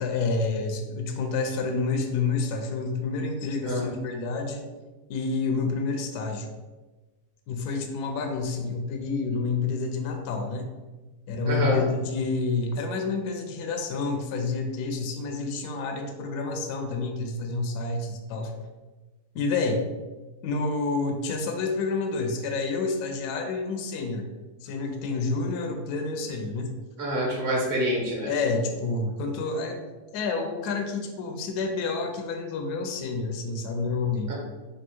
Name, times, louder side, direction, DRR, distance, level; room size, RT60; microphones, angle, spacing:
voice 1, 0.0-4.6 5.1-6.5 7.5-10.7 11.3-18.5 19.3-19.9 20.4-24.3 24.6-26.7 28.3-29.8 30.1-34.3, left 4 dB, 70° left, 4 dB, 1.0 m, -29 dB
voice 2, 11.5-11.8 27.0-28.3 34.3-34.4, equal, 30° right, -3 dB, 1.2 m, -26 dB
3.5 x 2.7 x 4.2 m, 1.2 s
omnidirectional pair, 1.9 m